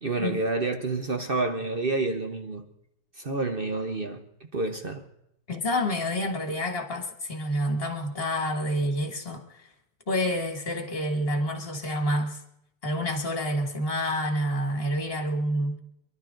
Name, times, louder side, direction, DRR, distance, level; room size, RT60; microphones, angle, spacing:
voice 1, 0.0-2.7 3.2-4.2 4.5-5.1, right 3 dB, 40° right, 0.8 m, -29 dB
voice 2, 5.5-9.7 10.1-12.4 12.8-15.8, equal, 30° left, 2.3 m, -28 dB
27.5 x 12.0 x 3.9 m
omnidirectional pair, 2.2 m